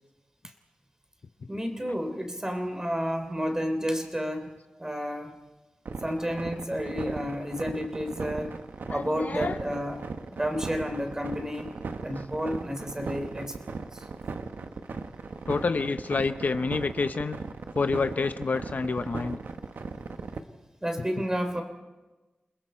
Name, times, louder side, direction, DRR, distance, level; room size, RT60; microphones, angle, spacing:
voice 1, 1.5-4.5 4.8-5.4 6.0-8.6 8.9-10.0 10.3-11.7 12.0-13.5 13.9-14.1 20.8-21.6, equal, 15° right, 5 dB, 3.3 m, -31 dB
sound 1, 5.9-20.4, right 4 dB, 85° right, 1.1 m, -37 dB
voice 2, 8.9-9.6 15.5-17.4 17.7-19.4, left 4 dB, 60° left, 10 dB, 0.7 m, -28 dB
29.0 x 21.0 x 4.4 m, 1.1 s
wide cardioid pair, 80°, 3 cm